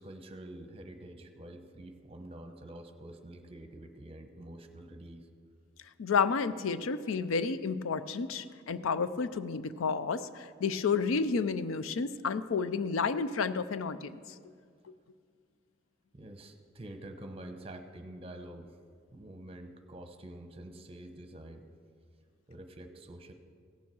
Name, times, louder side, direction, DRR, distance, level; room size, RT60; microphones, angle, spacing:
voice 1, 0.0-5.3 16.1-18.8 19.1-21.7 22.5-23.3, right 1 dB, 30° right, 6 dB, 0.9 m, -47 dB
voice 2, 6.0-14.2, left 5 dB, 85° left, 14 dB, 0.5 m, -31 dB
16.0 x 7.1 x 6.2 m, 2.2 s
head